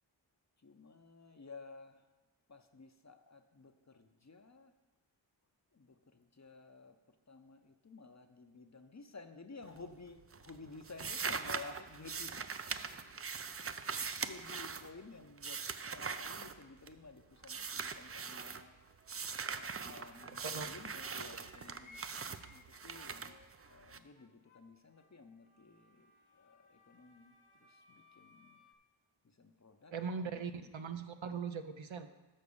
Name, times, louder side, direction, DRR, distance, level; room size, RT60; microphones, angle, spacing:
voice 1, 0.6-2.1 2.5-4.7 5.7-7.0 7.3-12.4 12.9-13.2 13.8-19.1 19.4-23.4 23.7-27.3 27.6-28.6 29.2-29.9 30.2-31.0, left 4 dB, 35° left, 8 dB, 0.6 m, -54 dB
sound 1, 9.6-10.1 10.3-17.1 17.4-18.6 19.1-24.0, right 5 dB, 30° right, 0.4 m, -42 dB
sound 2, 15.2-15.7 16.1-17.9 18.2-20.8 21.1-28.7, left 2 dB, 75° left, 0.9 m, -64 dB
voice 2, 20.4-20.7 29.9-32.1, right 5 dB, 70° right, 9 dB, 0.7 m, -40 dB
6.5 x 5.8 x 7.0 m, 1.1 s
wide cardioid pair, 45°, 48 cm